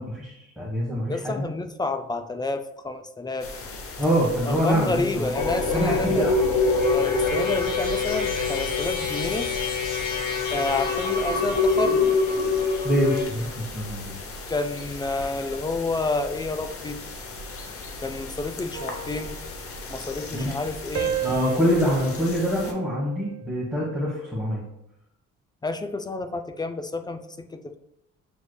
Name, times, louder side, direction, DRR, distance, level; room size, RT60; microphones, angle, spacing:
voice 1, 0.0-1.4 4.0-5.3 5.7-6.4 12.8-14.1 20.3-20.6 21.2-24.6, equal, ahead, -7 dB, 1.2 m, -25 dB
voice 2, 1.1-3.5 4.4-6.3 6.9-9.5 10.5-12.1 14.5-17.0 18.0-19.4 19.9-21.2 25.6-27.2 27.5-27.8, left 3 dB, 15° left, 8 dB, 0.3 m, -29 dB
sound 1, 3.4-22.7, left 3 dB, 50° left, 0.8 m, -38 dB
sound 2, 5.3-13.2, left 4 dB, 90° left, 1.3 m, -24 dB
sound 3, 18.7-20.6 20.9-23.5 24.0-24.3, right 9 dB, 65° right, 0.9 m, -34 dB
6.3 x 3.1 x 2.2 m, 0.83 s
cardioid pair, 90°, 30 cm